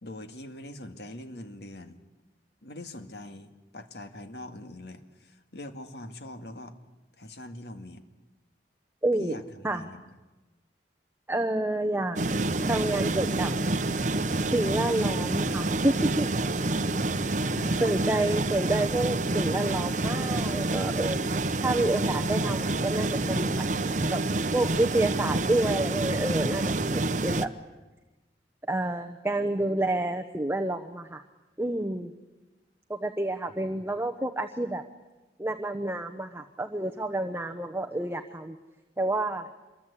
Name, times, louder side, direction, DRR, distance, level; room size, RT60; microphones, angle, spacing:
voice 1, 0.0-2.0 2.6-6.8 7.2-8.0 9.2-10.2 17.4-18.2 33.5-33.7, left 1 dB, 70° left, 7 dB, 2.1 m, -42 dB
voice 2, 9.0-9.8 11.3-12.2 12.7-13.5 14.5-16.3 17.8-21.2 21.6-24.2 24.5-27.5 28.7-31.2 31.6-32.1 32.9-34.8 35.4-38.6 39.0-39.5, right 1 dB, 15° right, 6 dB, 1.0 m, -29 dB
sound 1, 12.2-27.5, right 2 dB, 45° right, 0.9 m, -28 dB
26.5 x 22.5 x 8.4 m, 1.1 s
head